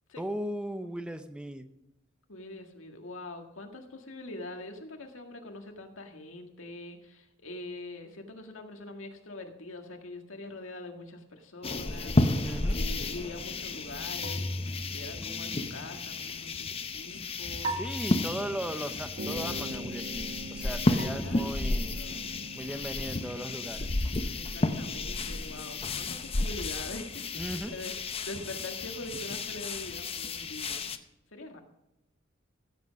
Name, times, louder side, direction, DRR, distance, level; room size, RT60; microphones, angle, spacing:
voice 1, 0.2-1.7 12.4-12.8 15.2-15.7 17.1-17.2 17.7-22.0 22.5-23.9 27.4-27.7, equal, 5° right, 9 dB, 0.6 m, -37 dB
voice 2, 2.3-17.8 20.8-21.5 21.9-22.4 24.3-27.3 27.7-30.9 31.3-31.6, left 2 dB, 80° left, 3 dB, 1.8 m, -43 dB
sound 1, 11.6-31.0, left 2 dB, 30° left, 0.7 m, -32 dB
sound 2, 14.2-15.9 17.6-19.1 21.0-22.2, right 1 dB, 30° right, 1.1 m, -39 dB
sound 3, 19.1-26.8, right 1 dB, 50° right, 0.8 m, -45 dB
15.5 x 7.9 x 5.2 m, 0.91 s
head